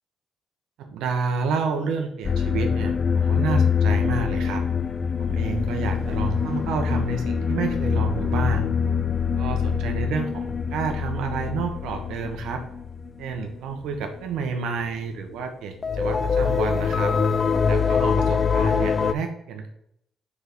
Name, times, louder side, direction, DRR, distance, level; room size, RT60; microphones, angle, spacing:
voice 1, 0.8-4.6 5.2-8.7 9.4-12.6 13.2-17.1 17.7-19.7, right 5 dB, 90° right, 5 dB, 1.0 m, -29 dB
sound 1, 2.2-13.6 13.9-14.1 14.3-14.5 15.8-19.1, left 6 dB, 40° left, 0.3 m, -24 dB
4.8 x 4.8 x 5.2 m, 0.73 s
cardioid pair, 90°, 0 cm